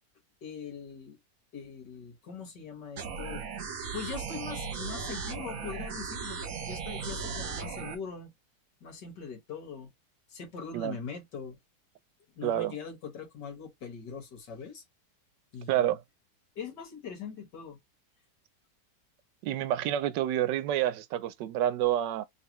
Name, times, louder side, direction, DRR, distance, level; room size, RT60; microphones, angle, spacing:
voice 1, 0.4-1.2 1.5-3.4 3.9-8.3 8.8-9.9 10.3-11.6 12.4-14.8 15.5-15.9 16.6-17.8, left 6 dB, 75° left, 2.1 m, -42 dB
sound 1, 3.0-8.0, right 5 dB, 55° right, 1.3 m, -37 dB
voice 2, 12.4-12.8 15.7-16.0 19.4-22.3, right 12 dB, 80° right, 1.2 m, -28 dB
3.6 x 3.3 x 2.9 m
omnidirectional pair, 1.9 m